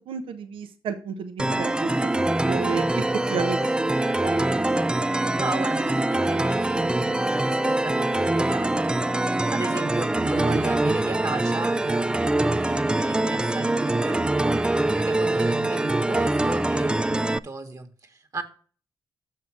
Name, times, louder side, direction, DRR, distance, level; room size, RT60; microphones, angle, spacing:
voice 1, 0.1-1.9 2.5-2.8 3.3-3.9 4.2-4.4 10.5-10.6, right 6 dB, 85° right, 0.8 m, -31 dB
sound 1, 1.4-17.4, right 2 dB, 10° right, 0.3 m, -24 dB
voice 2, 5.3-18.4, right 3 dB, 40° right, 1.4 m, -35 dB
6.5 x 5.6 x 6.0 m
cardioid pair, 70°, 9 cm